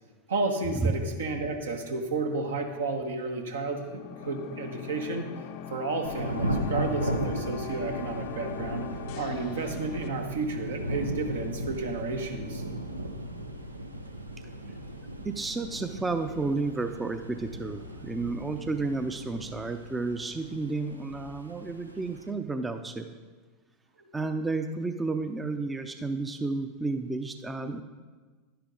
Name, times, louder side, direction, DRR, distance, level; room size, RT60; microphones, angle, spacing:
voice 1, 0.3-5.3 5.7-8.8 9.1-12.6 24.1-24.2, right 3 dB, 70° right, 4 dB, 1.3 m, -32 dB
sound 1, 3.7-10.1, left 8 dB, 50° left, 0.5 m, -41 dB
Thunder / Rain, 6.0-22.3, right 1 dB, 90° right, 0.7 m, -36 dB
voice 2, 15.2-23.1 24.1-27.8, right 3 dB, 15° right, 8 dB, 0.5 m, -31 dB
10.5 x 10.0 x 3.8 m, 1.4 s
figure-of-eight pair, 85°, 0 cm